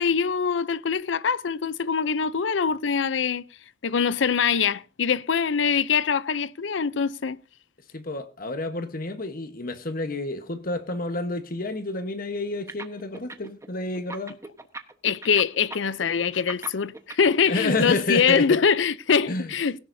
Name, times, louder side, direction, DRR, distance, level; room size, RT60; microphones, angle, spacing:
voice 1, 0.0-3.4 3.8-7.4 15.0-19.8, left 6 dB, 70° left, 0.6 m, -23 dB
voice 2, 7.9-14.4 17.5-18.5 19.3-19.5, left 2 dB, 50° left, 1.2 m, -29 dB
sound 1, 12.7-13.7 13.9-17.3, right 3 dB, 15° right, 1.1 m, -38 dB
17.0 x 17.0 x 2.7 m
head